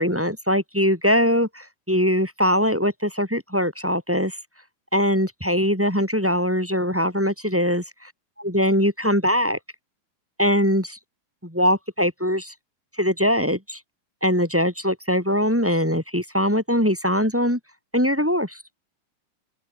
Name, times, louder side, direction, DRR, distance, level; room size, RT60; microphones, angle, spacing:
voice 1, 0.0-4.4 4.9-8.1 8.4-9.6 10.4-11.0 11.4-12.5 13.0-13.8 14.2-17.6 17.9-18.6, equal, 5° right, 5.9 m, -22 dB
open air
omnidirectional pair, 3.9 m